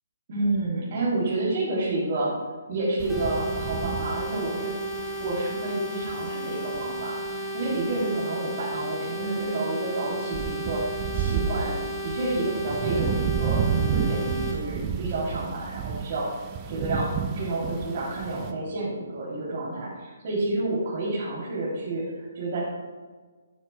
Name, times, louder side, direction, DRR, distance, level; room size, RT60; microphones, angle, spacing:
voice 1, 0.3-2.3 2.7-4.7 5.0-10.8 11.1-16.4 16.7-22.6, right 2 dB, 40° right, -7 dB, 3.1 m, -29 dB
sound 1, 3.0-18.5, right 7 dB, 25° right, 0.8 m, -32 dB
sound 2, 3.1-14.5, equal, 10° left, 2.1 m, -34 dB
12.0 x 11.5 x 2.3 m, 1.4 s
figure-of-eight pair, 135°, 0 cm